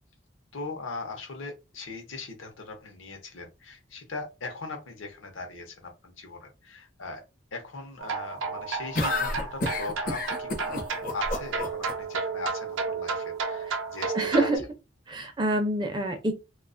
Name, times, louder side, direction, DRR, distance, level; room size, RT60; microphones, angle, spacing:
voice 1, 0.5-7.2 7.5-14.5, left 3 dB, 80° left, 0.7 m, -39 dB
sound 1, 8.0-14.6, right 4 dB, 75° right, 0.5 m, -32 dB
sound 2, 8.9-11.9, left 2 dB, 45° left, 0.5 m, -30 dB
voice 2, 14.1-14.6 15.1-16.3, right 1 dB, 20° right, 0.4 m, -26 dB
2.3 x 2.3 x 2.4 m
head